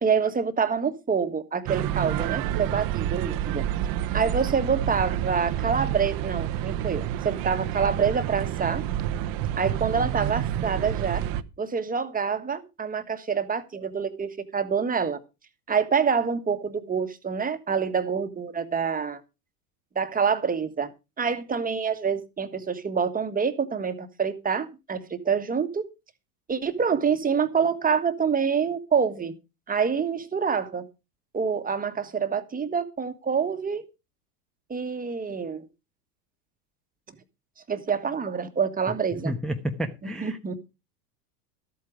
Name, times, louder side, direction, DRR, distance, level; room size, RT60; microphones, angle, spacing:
voice 1, 0.0-3.6 4.1-8.8 9.6-11.2 11.6-15.2 15.7-19.2 19.9-20.9 21.2-25.8 26.5-29.3 29.7-30.8 31.3-33.8 34.7-35.6 37.7-39.3 40.0-40.5, right 6 dB, 15° right, 1.5 m, -26 dB
sound 1, 1.7-11.4, right 11 dB, 45° right, 1.0 m, -29 dB
voice 2, 39.2-40.4, right 1 dB, ahead, 1.0 m, -30 dB
13.0 x 8.5 x 4.9 m
hypercardioid pair, 95°, 47 cm